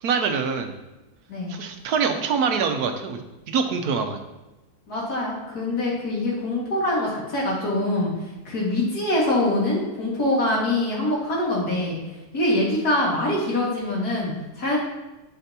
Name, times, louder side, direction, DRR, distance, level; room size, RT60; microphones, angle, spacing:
voice 1, 0.0-0.8 1.5-4.2, right 5 dB, 80° right, 6 dB, 1.3 m, -25 dB
voice 2, 4.9-8.1 8.4-12.0 12.3-14.8, left 1 dB, 75° left, -5 dB, 2.6 m, -24 dB
11.5 x 4.9 x 2.9 m, 1.0 s
omnidirectional pair, 1.6 m